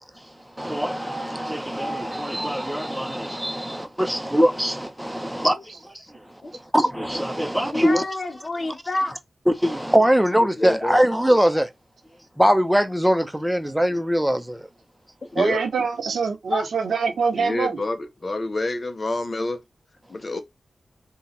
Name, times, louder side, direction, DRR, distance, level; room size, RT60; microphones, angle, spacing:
voice 1, 0.5-8.1 9.5-11.7 12.4-14.7, equal, 5° right, 0.9 m, -22 dB
voice 2, 7.7-9.2 10.6-11.0 15.3-15.6 16.5-16.7 17.4-19.6 20.1-20.4, left 2 dB, 45° left, 0.8 m, -28 dB
voice 3, 15.4-17.8, right 5 dB, 85° right, 1.1 m, -24 dB
3.8 x 2.4 x 4.1 m
cardioid pair, 45°, 0 cm